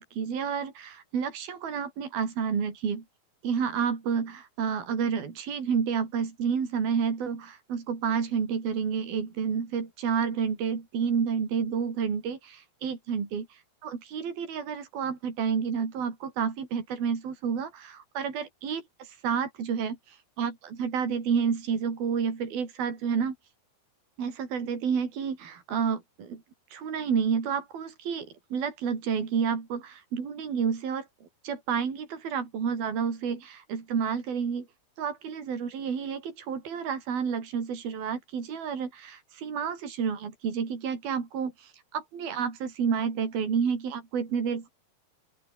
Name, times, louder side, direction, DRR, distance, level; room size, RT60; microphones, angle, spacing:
voice 1, 0.0-3.0 3.4-13.5 13.8-23.4 24.2-26.4 26.7-31.1 31.4-34.7 35.0-44.7, right 6 dB, 70° right, 6.1 m, -30 dB
open air
omnidirectional pair, 4.4 m